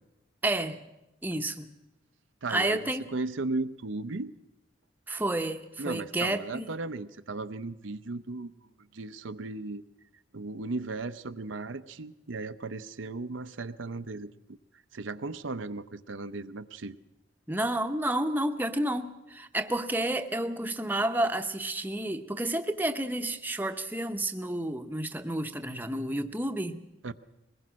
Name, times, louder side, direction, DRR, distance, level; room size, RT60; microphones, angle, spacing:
voice 1, 0.4-0.8 1.2-1.7 2.5-3.1 5.1-6.7 17.5-26.8, right 1 dB, 10° right, 6 dB, 0.8 m, -30 dB
voice 2, 2.4-2.8 3.1-4.3 5.8-8.5 8.9-9.8 10.3-14.3 14.9-17.0 27.0-27.1, right 3 dB, 85° right, 11 dB, 0.7 m, -36 dB
21.5 x 20.0 x 6.3 m, 0.95 s
head